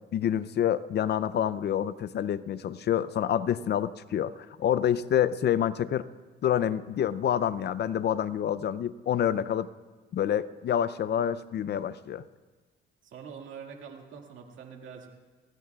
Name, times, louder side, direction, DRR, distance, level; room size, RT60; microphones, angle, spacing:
voice 1, 0.1-6.1 6.4-9.7 10.1-12.2, left 9 dB, 55° left, 16 dB, 0.5 m, -27 dB
voice 2, 13.0-15.1, right 6 dB, 75° right, 2 dB, 2.1 m, -45 dB
24.0 x 17.0 x 2.4 m, 1.3 s
cardioid pair, 90°, 20 cm